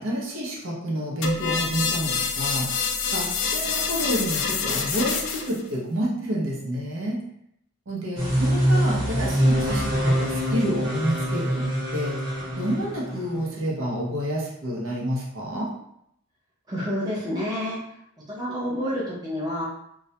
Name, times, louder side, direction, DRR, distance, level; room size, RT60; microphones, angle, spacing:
voice 1, 0.0-2.7 3.1-7.2 7.9-11.6 11.9-12.2 12.5-15.7, equal, 65° right, -3 dB, 0.6 m, -29 dB
sound 1, 1.2-5.6, left 5 dB, 55° left, 0.3 m, -26 dB
sound 2, 8.2-13.5, equal, 85° right, 1.1 m, -24 dB
voice 2, 16.7-17.8 18.3-19.7, equal, 20° right, -7 dB, 0.5 m, -28 dB
2.2 x 2.0 x 2.7 m, 0.74 s
head